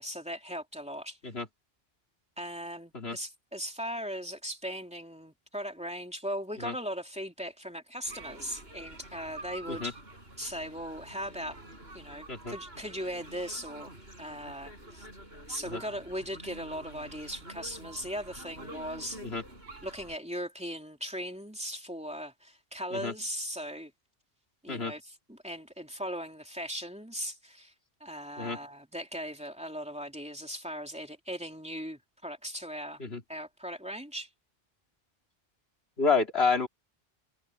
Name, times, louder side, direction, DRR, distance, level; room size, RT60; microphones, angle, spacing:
voice 1, 0.0-1.2 2.4-10.0 10.4-11.6 11.9-13.9 14.2-15.1 15.5-19.2 19.8-23.9 24.6-27.7 28.0-33.0 33.3-34.3, equal, 5° right, 2.9 m, -38 dB
sound 1, 8.0-20.2, right 1 dB, 80° right, 6.6 m, -47 dB
voice 2, 36.0-36.7, left 4 dB, 85° left, 3.1 m, -29 dB
omnidirectional pair, 1.0 m